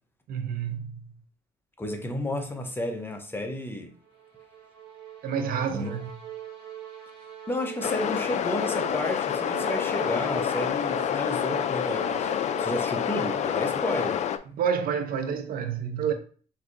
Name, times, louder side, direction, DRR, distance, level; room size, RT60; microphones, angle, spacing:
voice 1, 0.3-1.1 5.2-6.1 14.5-16.1, right 7 dB, 60° right, 0.7 m, -29 dB
voice 2, 1.8-3.9 5.7-6.0 7.5-12.3 12.6-14.2, left 1 dB, 15° left, 0.7 m, -32 dB
sound 1, 3.9-14.4, right 10 dB, 85° right, 1.5 m, -42 dB
sound 2, 7.8-14.4, left 9 dB, 45° left, 0.4 m, -28 dB
5.9 x 2.8 x 2.5 m
cardioid pair, 110°, 17 cm